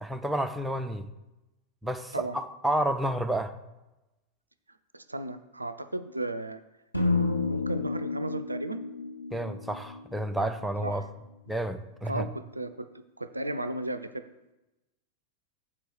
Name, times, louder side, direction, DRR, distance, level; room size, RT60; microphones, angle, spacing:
voice 1, 0.0-1.1 1.8-3.5 9.3-11.0 11.5-12.2, right 1 dB, 5° right, 7 dB, 0.6 m, -30 dB
voice 2, 4.9-6.6 7.5-8.8 10.8-11.0 12.1-12.9 13.2-14.3, right 2 dB, 85° right, 12 dB, 0.4 m, -34 dB
sound 1, 6.9-11.1, left 3 dB, 85° left, 0.7 m, -31 dB
7.3 x 4.6 x 6.4 m, 1.0 s
figure-of-eight pair, 90°, 0 cm